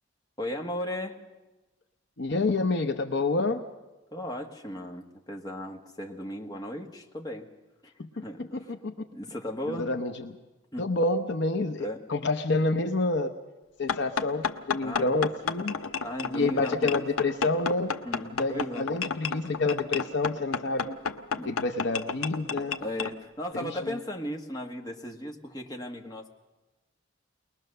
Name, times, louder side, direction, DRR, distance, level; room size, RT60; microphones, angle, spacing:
voice 1, 0.4-1.2 4.1-7.5 7.8-8.7 9.1-9.9 10.7-10.9 11.8-12.1 14.8-15.1 16.0-17.1 18.0-18.9 21.3-21.5 22.8-26.3, left 1 dB, 20° left, 1 dB, 1.5 m, -36 dB
voice 2, 2.2-3.6 8.0-8.1 8.4-8.5 8.8-8.9 9.7-10.3 10.8-13.3 13.8-15.8 16.3-18.0 18.3-21.0 21.5-22.8 23.6-23.7, left 2 dB, 55° left, 7 dB, 0.8 m, -28 dB
sound 1, 13.9-23.1, left 5 dB, 85° left, 0.9 m, -32 dB
21.5 x 20.5 x 6.6 m, 1.1 s
head